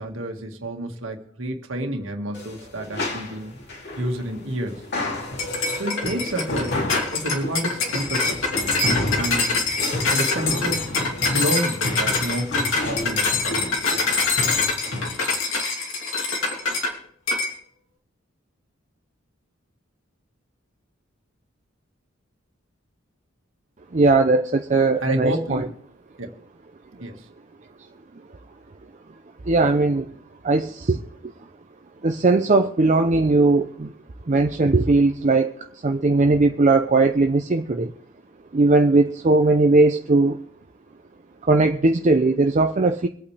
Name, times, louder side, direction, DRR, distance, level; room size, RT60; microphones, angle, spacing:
voice 1, 0.0-3.5 4.0-4.9 5.7-6.8 7.1-8.5 8.8-9.6 10.1-10.9 11.3-14.1 25.0-25.7 26.2-26.3 27.0-27.3, right 1 dB, 75° right, 3 dB, 1.8 m, -29 dB
sound 1, 2.3-15.2, left 1 dB, 55° left, 2.8 m, -31 dB
sound 2, 5.4-16.9 17.3-17.5, left 3 dB, 80° left, 3.0 m, -24 dB
voice 2, 23.9-25.7 29.4-30.1 30.4-31.1 32.0-33.9 34.3-37.9 38.5-40.4 41.5-43.1, right 3 dB, 35° right, 5 dB, 0.6 m, -19 dB
24.5 x 8.6 x 3.3 m, 0.62 s
head